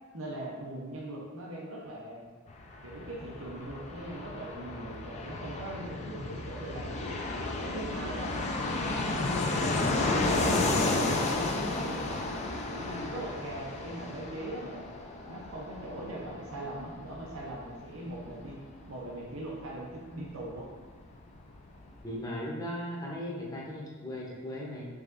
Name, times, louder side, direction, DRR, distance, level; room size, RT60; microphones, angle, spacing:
voice 1, 0.1-2.2 2.8-7.1 7.6-8.4 8.7-9.9 10.4-12.4 12.7-14.8 15.3-18.6 18.9-20.7, right 1 dB, 75° right, -3 dB, 0.7 m, -40 dB
Fixed-wing aircraft airplane, 2.5-20.9 21.1-21.2 21.4-22.1, left 2 dB, 35° left, 0.4 m, -33 dB
voice 2, 22.0-24.9, equal, 20° left, -4 dB, 0.7 m, -37 dB
4.9 x 3.5 x 2.5 m, 1.4 s
head